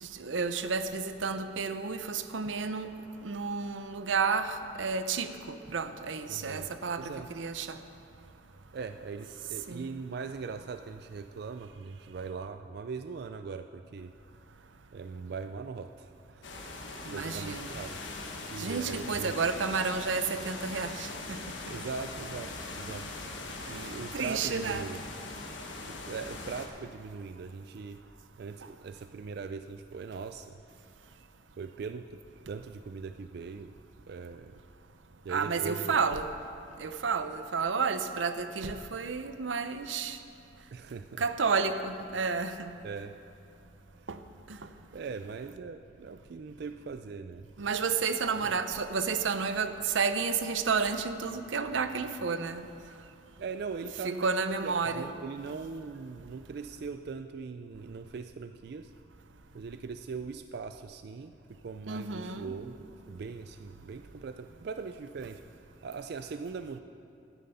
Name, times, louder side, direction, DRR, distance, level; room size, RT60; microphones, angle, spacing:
voice 1, 0.0-2.9 3.2-7.8 9.7-9.9 17.0-17.7 18.6-21.4 24.1-24.9 28.6-28.7 35.3-36.3 36.8-40.2 41.2-42.7 44.1-44.2 44.5-44.6 47.6-52.7 54.0-55.1 61.9-62.6, right 5 dB, 90° right, 10 dB, 0.7 m, -31 dB
voice 2, 6.3-6.7 7.0-7.3 8.7-14.1 14.9-16.8 17.1-18.0 18.5-19.3 21.7-23.1 23.7-25.0 25.9-28.0 28.4-30.6 31.6-32.2 32.5-33.7 34.1-34.6 35.2-36.0 40.7-41.2 42.8-43.1 44.9-47.5 48.4-48.5 53.4-58.9 59.5-65.4 65.8-66.8, right 5 dB, 60° right, 8 dB, 0.4 m, -40 dB
sound 1, 16.4-26.7, left 3 dB, 80° left, 1.3 m, -41 dB
12.0 x 9.5 x 5.6 m, 2.7 s
head